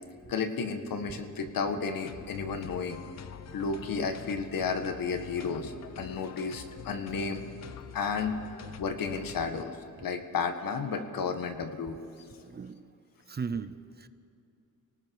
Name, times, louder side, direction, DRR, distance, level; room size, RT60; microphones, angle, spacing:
voice 1, 0.3-3.0 3.5-7.4 7.9-9.7 10.0-12.0, left 5 dB, 70° left, 7 dB, 1.8 m, -32 dB
sound 1, 2.0-9.6, left 9 dB, 50° left, 0.7 m, -45 dB
voice 2, 12.4-12.8 13.3-14.1, right 5 dB, 30° right, 13 dB, 0.6 m, -37 dB
29.0 x 18.5 x 4.8 m, 2.6 s
cardioid pair, 125°, 35 cm